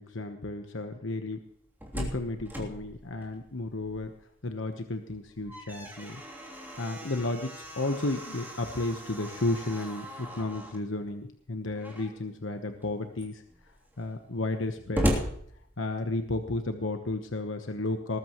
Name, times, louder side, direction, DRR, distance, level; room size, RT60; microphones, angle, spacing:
voice 1, 0.0-1.4 1.9-4.1 4.4-6.2 6.8-13.4 14.0-15.1 15.8-18.2, left 2 dB, 75° left, 6 dB, 1.2 m, -33 dB
Slam, 1.5-4.3 4.7-4.8 5.2-10.8 11.7-12.3 12.8-12.9 13.1-16.3, equal, 10° right, 3.2 m, -37 dB
19.5 x 14.5 x 3.1 m, 0.65 s
head